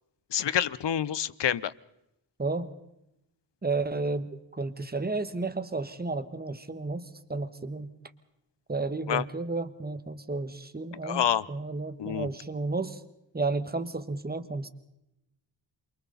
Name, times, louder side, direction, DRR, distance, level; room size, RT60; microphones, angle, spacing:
voice 1, 0.3-1.7 9.1-9.2 11.0-11.5 12.0-12.3, left 9 dB, 65° left, 19 dB, 0.8 m, -27 dB
voice 2, 2.4-2.7 3.6-4.3 4.5-7.9 8.7-13.0 13.3-14.7, right 3 dB, 20° right, 11 dB, 1.4 m, -32 dB
28.5 x 24.0 x 4.0 m, 0.86 s
wide cardioid pair, 80°, 45 cm